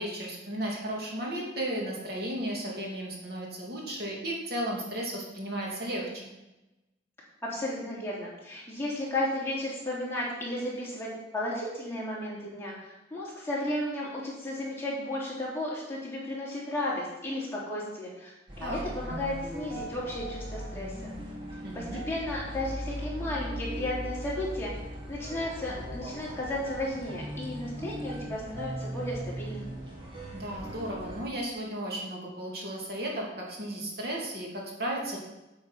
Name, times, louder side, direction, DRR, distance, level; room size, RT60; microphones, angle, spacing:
voice 1, 0.0-6.1 18.6-18.8 21.6-22.0 30.3-35.2, right 1 dB, 55° right, -2 dB, 2.5 m, -34 dB
voice 2, 7.4-20.9 21.7-24.7 25.1-29.7, left 1 dB, 15° left, -6 dB, 3.2 m, -34 dB
sound 1, 18.5-31.2, equal, 25° right, 2.2 m, -39 dB
8.7 x 8.4 x 5.7 m, 0.98 s
head